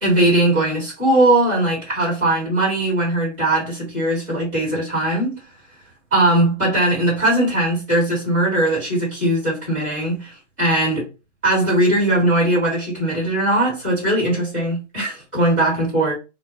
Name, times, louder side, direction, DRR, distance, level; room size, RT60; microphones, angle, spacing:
voice 1, 0.0-5.4 6.1-11.1 11.4-16.1, right 1 dB, 15° right, 1.2 m, -19 dB
2.2 x 2.0 x 3.1 m
hypercardioid pair, 180°, 37 cm